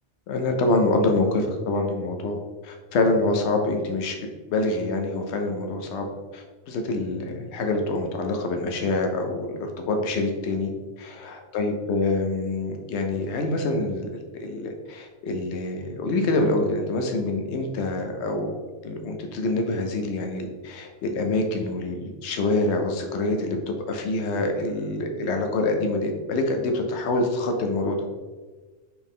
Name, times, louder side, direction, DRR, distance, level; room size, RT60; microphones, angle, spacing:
voice 1, 0.3-2.4 2.6-4.1 4.5-6.1 6.3-10.7 11.0-18.5 18.8-28.0, left 2 dB, 75° left, 4 dB, 0.9 m, -26 dB
4.6 x 3.5 x 3.2 m, 1.3 s
omnidirectional pair, 1.2 m